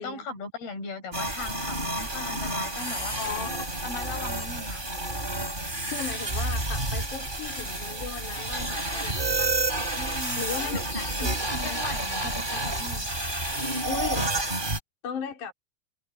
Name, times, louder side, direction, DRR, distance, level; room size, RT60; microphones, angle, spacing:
voice 1, 0.0-3.2 3.8-4.8 10.0-13.1, left 3 dB, 85° left, 9.6 m, -38 dB
sound 1, 1.1-14.8, right 2 dB, 10° right, 5.4 m, -30 dB
voice 2, 3.2-3.8 5.9-9.6 10.4-11.8 13.8-14.3 15.0-15.5, left 6 dB, 55° left, 5.5 m, -37 dB
omnidirectional pair, 4.3 m